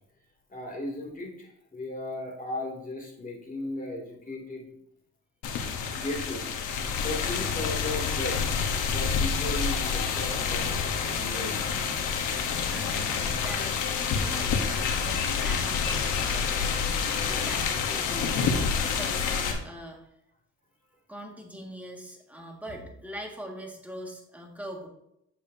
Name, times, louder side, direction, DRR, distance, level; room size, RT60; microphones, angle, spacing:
voice 1, 0.5-4.7 5.9-11.6 12.4-12.5, left 1 dB, 30° left, 0 dB, 2.6 m, -36 dB
sound 1, 5.4-19.5, left 6 dB, 85° left, 1.1 m, -28 dB
voice 2, 12.7-20.0 21.1-24.9, equal, 5° right, 0 dB, 1.9 m, -42 dB
8.7 x 6.8 x 2.8 m, 0.79 s
cardioid pair, 90°, 30 cm